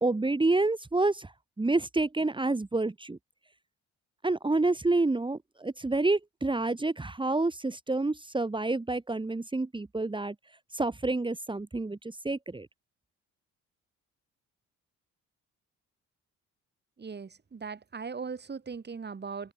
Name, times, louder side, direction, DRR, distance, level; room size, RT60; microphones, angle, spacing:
voice 1, 0.0-1.3 1.6-3.2 4.2-10.3 10.8-12.0 12.2-12.7, right 2 dB, 15° right, 2.1 m, -28 dB
voice 2, 17.0-19.5, right 5 dB, 35° right, 4.9 m, -39 dB
open air
cardioid pair, 90°, 30 cm